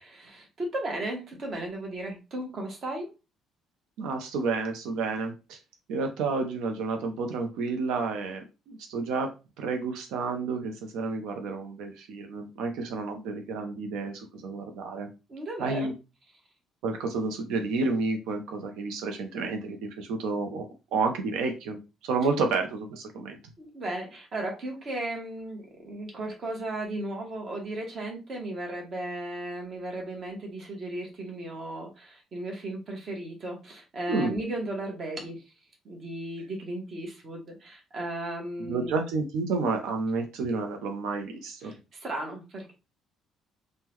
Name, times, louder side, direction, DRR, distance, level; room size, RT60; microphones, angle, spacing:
voice 1, 0.2-3.1 15.3-15.9 23.6-35.4 35.8-38.9 41.6-42.7, right 1 dB, 35° right, 1 dB, 1.0 m, -35 dB
voice 2, 4.0-5.6 5.9-9.3 9.6-15.1 15.6-15.9 16.8-20.6 20.9-23.4 34.1-34.4 38.7-41.7, right 4 dB, 80° right, 4 dB, 0.5 m, -30 dB
3.6 x 2.1 x 3.0 m, 0.29 s
cardioid pair, 165°, 0 cm